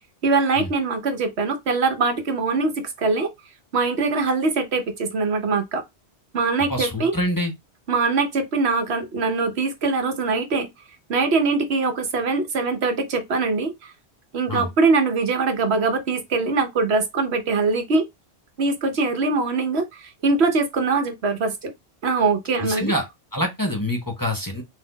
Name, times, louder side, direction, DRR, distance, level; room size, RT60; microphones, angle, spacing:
voice 1, 0.2-2.7 3.0-3.3 3.7-5.8 6.3-7.1 7.9-10.7 11.1-13.9 14.3-18.1 18.6-21.7 22.0-22.9, right 4 dB, 70° right, 1.2 m, -22 dB
voice 2, 6.7-7.5 14.5-14.7 22.6-23.0 23.3-24.6, left 1 dB, 20° left, 0.8 m, -25 dB
4.1 x 2.6 x 3.9 m
omnidirectional pair, 1.1 m